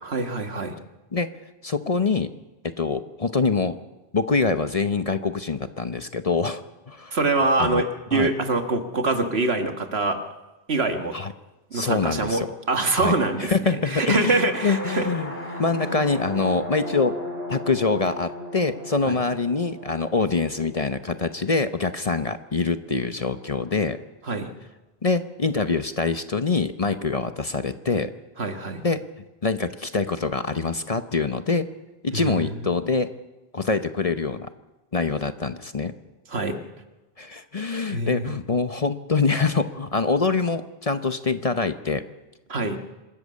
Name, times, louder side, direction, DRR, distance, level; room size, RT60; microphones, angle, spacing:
voice 1, 0.0-0.8 7.1-10.2 10.7-11.2 11.7-15.1 19.0-19.2 24.2-24.5 28.4-28.9 32.1-32.7 36.3-36.6 37.9-38.4 42.5-42.8, right 3 dB, 75° right, 7 dB, 1.9 m, -25 dB
voice 2, 1.6-2.3 2.6-3.8 4.1-6.6 6.9-7.2 7.6-7.8 8.1-8.3 11.1-11.3 11.7-12.5 12.9-14.4 14.6-15.3 15.6-17.2 17.5-24.0 25.0-28.1 28.8-29.0 29.4-31.7 32.0-33.1 33.5-34.5 34.9-35.9 37.2-42.0, left 4 dB, 35° left, 10 dB, 0.8 m, -25 dB
sound 1, 14.2-22.0, equal, 70° left, 4.2 m, -36 dB
25.5 x 13.5 x 8.5 m, 1.1 s
omnidirectional pair, 1.1 m